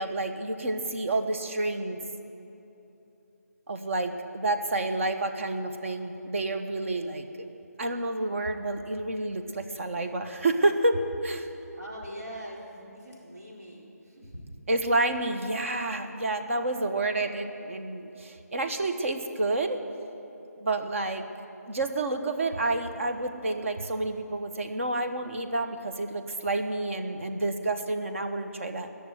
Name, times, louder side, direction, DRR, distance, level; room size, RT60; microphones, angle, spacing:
voice 1, 0.0-2.0 3.7-7.5 7.8-11.5 14.7-19.8 20.6-21.2 21.7-28.9, right 2 dB, 50° right, 6 dB, 1.2 m, -29 dB
voice 2, 11.7-14.4, equal, 75° right, -3 dB, 4.6 m, -42 dB
20.5 x 6.9 x 9.2 m, 3.0 s
figure-of-eight pair, 160°, 9 cm